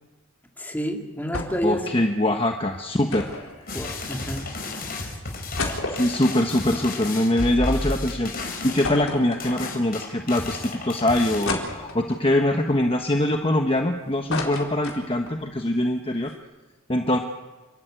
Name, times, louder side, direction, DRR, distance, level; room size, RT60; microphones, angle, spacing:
voice 1, 0.6-1.9 3.7-4.5, equal, 10° left, 2 dB, 2.3 m, -29 dB
sound 1, 1.3-1.8 2.0-2.1 3.1-4.4 4.9-5.0 5.3-7.8 8.1-8.2 8.8-10.0 10.5-10.6 11.5-12.3 12.8-13.8 14.1-15.4 15.8-15.9 16.1-16.3, left 2 dB, 75° left, 4.1 m, -33 dB
voice 2, 1.6-3.5 5.9-16.3 16.9-17.2, left 1 dB, 25° left, 4 dB, 1.2 m, -23 dB
sound 2, 3.7-11.4, left 2 dB, 40° left, 4.7 m, -32 dB
29.0 x 13.0 x 9.1 m, 1.2 s
head